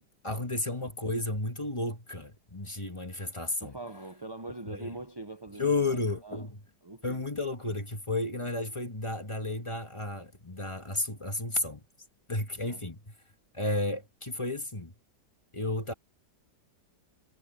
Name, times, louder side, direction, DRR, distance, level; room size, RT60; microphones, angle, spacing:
voice 1, 0.2-3.7 4.7-4.9 5.6-6.6 7.0-11.8 12.3-13.0 13.5-14.9 15.5-15.9, left 2 dB, 15° left, 1.7 m, -32 dB
voice 2, 3.6-6.5 6.8-7.2 12.6-12.9, right 2 dB, 35° right, 0.4 m, -43 dB
omnidirectional pair, 2.0 m